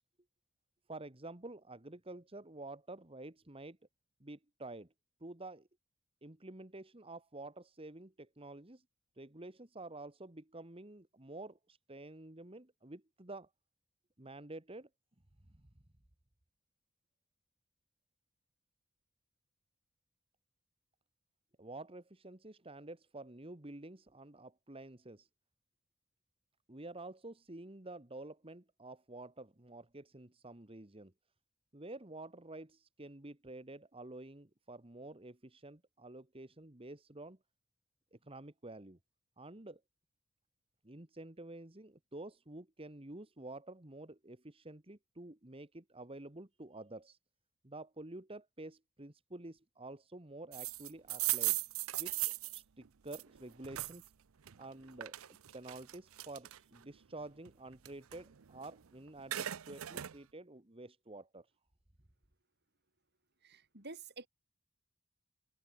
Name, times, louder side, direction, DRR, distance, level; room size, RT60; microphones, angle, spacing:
voice 1, 0.9-3.8 4.2-4.9 5.2-5.7 6.2-8.8 9.2-13.5 14.2-14.9 21.6-25.3 26.7-31.1 31.7-37.4 38.1-39.0 39.4-39.8 40.8-47.2 47.6-51.6 52.0-52.2 52.5-54.0 54.6-55.1 55.5-61.5, right 2 dB, 25° right, 1.6 m, -49 dB
sound 1, 50.5-54.1 54.5-56.8 57.3-58.8 59.1-60.1, right 16 dB, 85° right, 0.6 m, -38 dB
voice 2, 63.4-64.3, right 3 dB, 50° right, 6.8 m, -49 dB
head